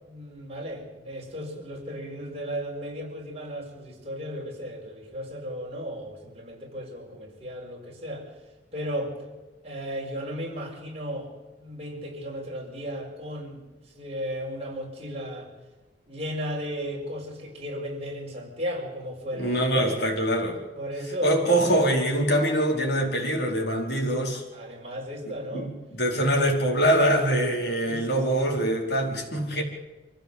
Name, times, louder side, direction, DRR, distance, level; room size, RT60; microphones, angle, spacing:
voice 1, 0.0-8.3 8.7-9.1 9.6-11.3 11.6-15.5 16.1-20.0 20.8-21.7 24.5-25.7 27.9-28.6 29.5-29.6, equal, 35° right, -1 dB, 5.5 m, -35 dB
voice 2, 19.3-20.6 21.2-24.4 25.5-29.6, right 1 dB, 65° left, 0 dB, 4.7 m, -24 dB
25.5 x 14.5 x 8.2 m, 1.2 s
head